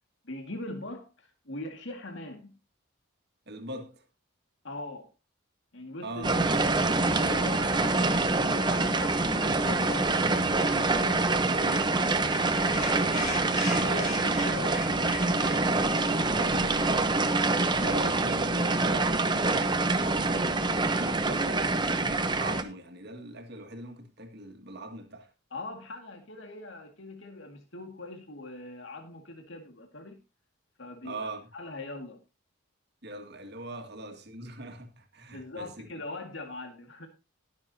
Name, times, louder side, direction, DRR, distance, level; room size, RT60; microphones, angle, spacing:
voice 1, 0.2-2.5 4.6-5.1 5.7-6.5 7.0-11.9 13.7-15.3 16.1-16.9 25.5-30.2 30.8-32.2 33.7-33.9 35.3-37.1, left 2 dB, 60° left, 2.1 m, -41 dB
voice 2, 3.5-4.0 6.0-7.2 10.6-10.7 12.8-13.4 13.8-14.1 16.1-16.8 17.6-25.3 31.0-31.5 33.0-35.9, right 2 dB, 50° right, 2.0 m, -41 dB
sound 1, 6.2-22.6, right 3 dB, 20° right, 0.8 m, -26 dB
sound 2, 11.6-18.0, left 2 dB, 35° left, 4.7 m, -41 dB
20.5 x 7.2 x 2.8 m
head